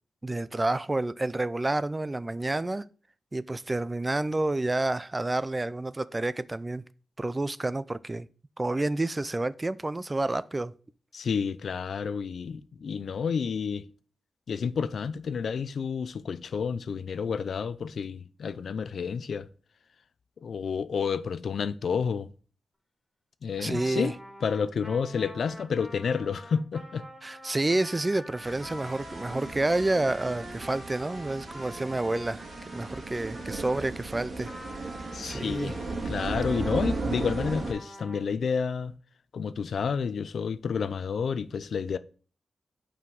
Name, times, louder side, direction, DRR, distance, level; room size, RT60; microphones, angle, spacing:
voice 1, 0.2-2.8 3.3-6.8 7.2-8.3 8.6-10.7 23.6-24.1 27.2-32.4 32.7-34.5 35.2-35.8, right 2 dB, 25° right, 0.4 m, -29 dB
voice 2, 11.1-13.9 14.5-19.5 20.4-22.3 23.4-24.2 24.4-27.0 35.1-35.8 36.1-38.9 39.3-42.0, left 6 dB, 70° left, 0.5 m, -30 dB
Trumpet, 23.7-33.9 34.4-38.2, equal, 5° right, 2.4 m, -46 dB
sound 1, 28.4-37.7, right 3 dB, 65° right, 2.3 m, -36 dB
5.8 x 4.9 x 5.3 m
cardioid pair, 75°, 0 cm